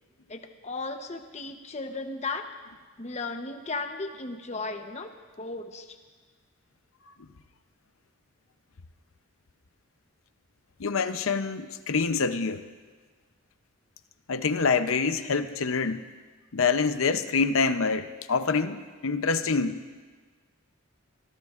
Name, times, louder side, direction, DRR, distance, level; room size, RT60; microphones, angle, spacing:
voice 1, 0.3-2.4 3.0-5.1 5.4-6.0, left 3 dB, 30° left, 6 dB, 0.9 m, -35 dB
voice 2, 10.8-12.6 14.3-16.0 16.5-20.0, left 4 dB, 75° left, 11 dB, 0.7 m, -26 dB
24.5 x 17.5 x 2.5 m, 1.4 s
head